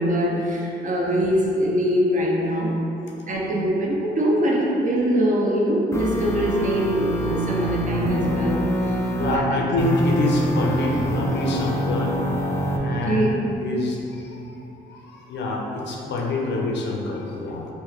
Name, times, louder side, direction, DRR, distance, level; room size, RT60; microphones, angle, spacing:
voice 1, 0.0-2.8 3.3-9.4 12.9-13.3, equal, 40° right, -2 dB, 0.5 m, -23 dB
sound 1, 5.9-9.4 9.8-12.8, equal, 15° left, 0.3 m, -25 dB
voice 2, 9.1-12.2 12.8-17.7, left 2 dB, 60° left, -1 dB, 0.5 m, -26 dB
3.1 x 2.1 x 3.6 m, 2.8 s
cardioid pair, 90°, 20 cm